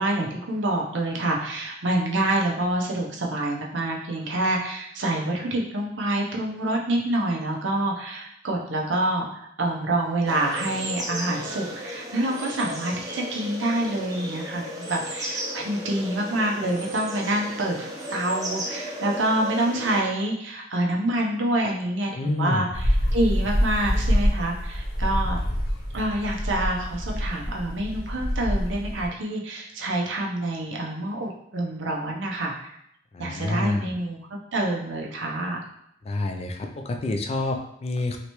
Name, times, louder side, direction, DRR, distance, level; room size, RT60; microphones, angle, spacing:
voice 1, 0.0-25.4 25.9-32.8 33.2-34.2 34.5-35.6, right 1 dB, 85° right, -1 dB, 0.7 m, -27 dB
sound 1, 10.2-20.0, equal, 20° right, 0.5 m, -35 dB
voice 2, 22.1-22.7 33.1-33.9 36.0-38.2, left 2 dB, 35° left, 4 dB, 0.3 m, -28 dB
sound 2, 22.7-29.1, equal, 60° left, 0.8 m, -26 dB
3.2 x 2.9 x 3.0 m, 0.74 s
head